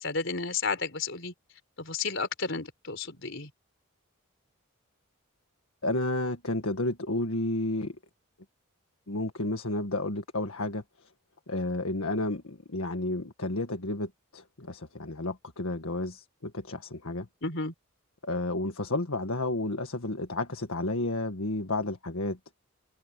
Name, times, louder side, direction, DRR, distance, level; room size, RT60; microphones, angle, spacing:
voice 1, 0.0-1.3 1.8-3.5 17.4-17.7, left 4 dB, 55° left, 4.6 m, -32 dB
voice 2, 5.8-7.9 9.1-10.8 11.5-17.3 18.2-22.4, left 2 dB, 70° left, 1.7 m, -31 dB
head